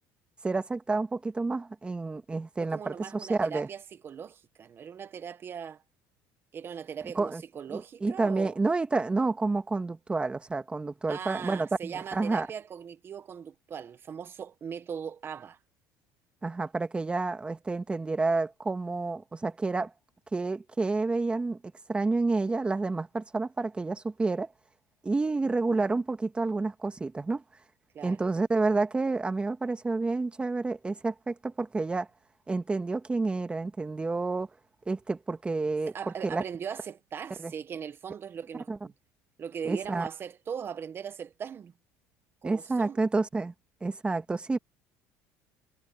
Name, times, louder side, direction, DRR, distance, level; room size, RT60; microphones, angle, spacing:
voice 1, 0.4-3.7 7.1-7.4 7.7-12.5 16.4-19.9 20.3-21.6 21.9-24.5 25.0-27.4 28.0-32.1 32.5-34.5 34.9-35.9 36.2-36.4 37.4-37.5 38.7-38.8 39.6-40.1 42.4-43.5 43.8-44.6, right 3 dB, 15° right, 1.8 m, -29 dB
voice 2, 2.6-5.8 6.5-8.6 11.1-15.6 27.9-28.2 35.9-38.9 39.4-41.7 42.4-43.0, right 7 dB, 35° right, 1.3 m, -39 dB
cardioid pair, 115°, 7 cm